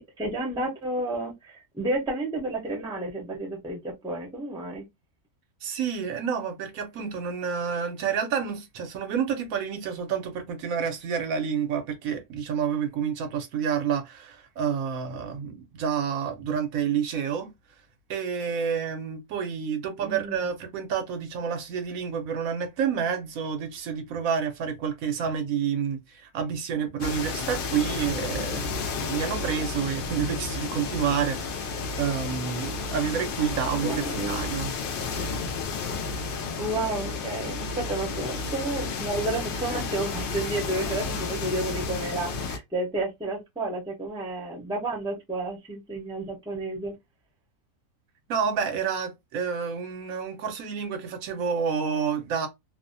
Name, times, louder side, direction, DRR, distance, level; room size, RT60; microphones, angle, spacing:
voice 1, 0.0-4.8 20.0-20.5 33.7-34.6 36.6-47.0, right 2 dB, 5° right, 0.5 m, -31 dB
voice 2, 5.6-17.5 18.1-34.7 48.3-52.5, right 7 dB, 75° right, 1.0 m, -29 dB
sound 1, 27.0-42.6, left 4 dB, 90° left, 0.4 m, -32 dB
2.6 x 2.1 x 2.5 m
omnidirectional pair, 1.5 m